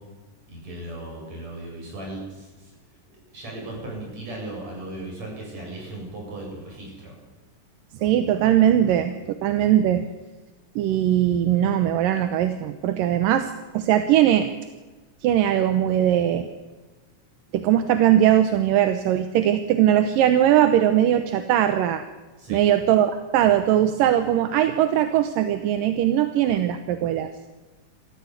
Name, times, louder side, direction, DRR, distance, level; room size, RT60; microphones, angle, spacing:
voice 1, 0.5-2.7 3.3-7.1 22.4-22.6, right 1 dB, 55° right, -1 dB, 9.3 m, -37 dB
voice 2, 8.0-9.2 9.4-10.0 10.8-14.5 15.2-16.5 17.5-22.0 22.5-27.3, right 11 dB, 85° right, 8 dB, 2.7 m, -20 dB
27.0 x 14.5 x 8.3 m, 1.2 s
omnidirectional pair, 3.8 m